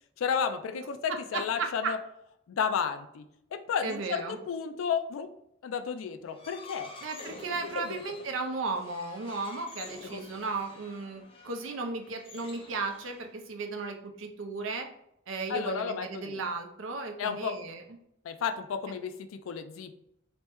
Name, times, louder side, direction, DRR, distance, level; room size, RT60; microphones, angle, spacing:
voice 1, 0.2-2.0 2.5-3.3 3.5-5.3 5.6-6.9 7.8-8.0 10.0-10.2 15.5-16.5 17.2-17.5 18.2-20.0, left 6 dB, 90° left, 8 dB, 0.3 m, -32 dB
voice 2, 1.6-1.9 3.8-4.4 7.0-14.9 15.3-17.8, right 3 dB, 75° right, 4 dB, 0.5 m, -35 dB
sound 1, 6.3-13.5, left 3 dB, 25° left, 0.4 m, -49 dB
3.4 x 2.1 x 3.0 m, 0.76 s
head